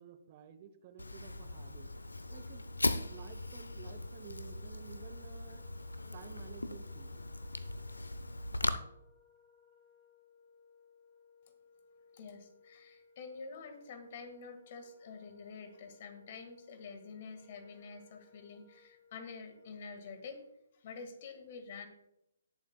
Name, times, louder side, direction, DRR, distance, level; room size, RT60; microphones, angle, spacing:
voice 1, 0.0-1.9 2.3-2.7 3.1-5.7 6.1-7.2, right 9 dB, 35° right, 10 dB, 0.8 m, -53 dB
Fire, 1.0-8.7, left 2 dB, 85° left, 0.7 m, -39 dB
Wind instrument woodwind instrument, 2.3-20.4, left 5 dB, 30° left, 3.5 m, -64 dB
voice 2, 12.1-20.5 20.7-21.9, left 5 dB, 45° left, 8 dB, 1.8 m, -48 dB
19.0 x 7.2 x 2.3 m, 0.83 s
figure-of-eight pair, 135°, 0 cm